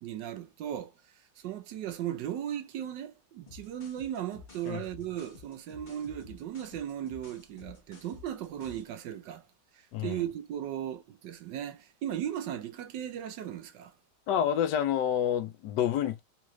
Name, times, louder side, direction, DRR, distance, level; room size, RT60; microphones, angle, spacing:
voice 1, 0.0-0.9 1.4-9.4 10.0-13.9, right 10 dB, 80° right, 1.4 m, -37 dB
sound 1, 3.5-8.9, left 5 dB, 30° left, 1.0 m, -52 dB
voice 2, 9.9-10.2 14.3-16.2, left 9 dB, 80° left, 1.2 m, -28 dB
3.8 x 2.4 x 3.1 m
omnidirectional pair, 1.9 m